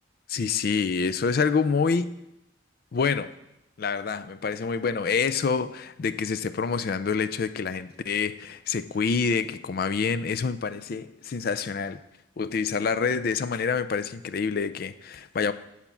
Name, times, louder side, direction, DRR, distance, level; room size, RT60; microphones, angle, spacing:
voice 1, 0.3-2.1 2.9-3.3 3.8-12.0 12.4-15.5, left 5 dB, 50° left, 14 dB, 0.4 m, -27 dB
9.1 x 4.3 x 7.1 m, 0.85 s
head